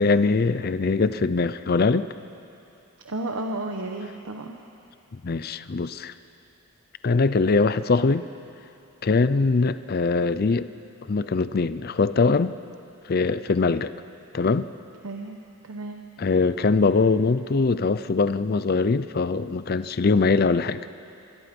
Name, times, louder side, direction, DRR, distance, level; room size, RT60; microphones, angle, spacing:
voice 1, 0.0-2.1 5.1-6.1 7.0-8.3 9.0-10.7 11.1-12.5 13.1-13.9 14.3-14.7 16.2-20.8, left 4 dB, 45° left, 13 dB, 0.5 m, -22 dB
voice 2, 3.0-4.6 15.0-16.0, right 2 dB, 85° right, 3 dB, 1.1 m, -33 dB
26.5 x 22.0 x 5.3 m, 2.8 s
head